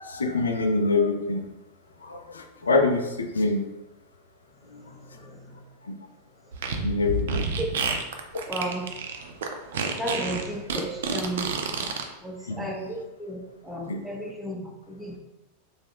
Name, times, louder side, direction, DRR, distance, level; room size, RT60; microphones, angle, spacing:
voice 1, 0.0-1.5 2.0-3.7 4.7-4.8 5.8-6.0 6.8-7.5 12.5-12.7 13.9-14.0, left 3 dB, 70° left, 4 dB, 0.3 m, -25 dB
voice 2, 4.7-5.6 7.6-7.7 8.5-8.9 10.0-11.5 12.2-15.2, right 1 dB, 5° right, 0 dB, 0.5 m, -34 dB
Fart, 6.5-12.0, right 4 dB, 60° right, 0.3 m, -29 dB
3.1 x 2.0 x 3.4 m, 0.98 s
figure-of-eight pair, 90°, 0 cm